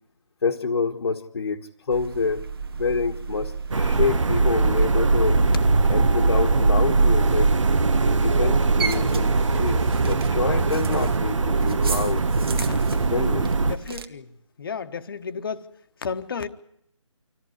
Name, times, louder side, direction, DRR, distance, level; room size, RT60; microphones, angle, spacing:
voice 1, 0.4-2.5 2.7-5.4 5.9-7.5 8.0-12.2 13.1-13.5, left 5 dB, 60° left, 1.6 m, -27 dB
sound 1, 1.9-14.1, right 5 dB, 45° right, 1.5 m, -33 dB
sound 2, 3.7-13.8, right 3 dB, 65° right, 1.4 m, -21 dB
voice 2, 12.5-12.9 13.6-14.3 14.6-15.7 16.0-16.5, left 6 dB, 45° left, 1.3 m, -32 dB
26.0 x 14.5 x 9.6 m
figure-of-eight pair, 160°, 17 cm